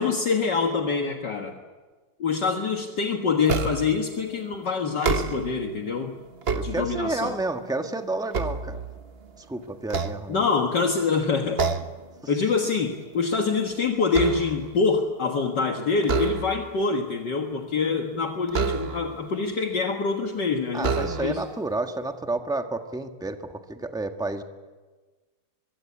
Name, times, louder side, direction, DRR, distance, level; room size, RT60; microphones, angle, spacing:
voice 1, 0.0-1.5 2.2-6.1 6.6-7.4 10.3-11.6 12.3-21.4, left 4 dB, 55° left, 2 dB, 2.1 m, -25 dB
sound 1, 3.5-4.0 4.9-5.7 6.2-7.3 7.8-9.3 9.8-10.8 11.6-12.1 12.4-12.7 13.1-14.8 16.0-16.8 18.5-19.3 20.0-20.1 20.8-21.5, right 4 dB, 40° right, 1.0 m, -29 dB
voice 2, 6.5-8.8 9.4-10.5 20.7-24.4, right 2 dB, ahead, 5 dB, 1.2 m, -30 dB
23.5 x 23.0 x 8.5 m, 1.3 s
omnidirectional pair, 2.3 m